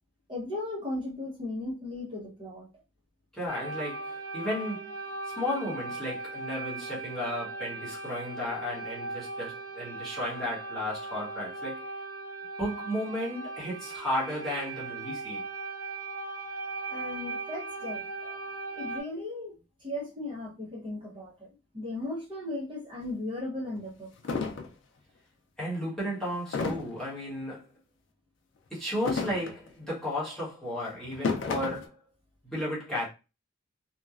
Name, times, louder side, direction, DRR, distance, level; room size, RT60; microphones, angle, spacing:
voice 1, 0.3-2.7 16.9-18.4 18.8-19.5 19.8-21.5 21.7-24.1, left 2 dB, 25° right, 0.8 m, -36 dB
voice 2, 3.3-5.0 5.4-11.9 12.6-15.4 25.6-27.7 28.7-31.9 32.4-33.1, left 1 dB, ahead, 1.1 m, -34 dB
sound 1, 3.5-19.0, right 3 dB, 85° right, 0.7 m, -38 dB
sound 2, 23.0-23.1 23.8-23.9 24.2-24.7 26.5-27.0 28.9-29.7 31.0-31.9, left 4 dB, 60° left, 0.4 m, -31 dB
2.9 x 2.2 x 2.3 m
head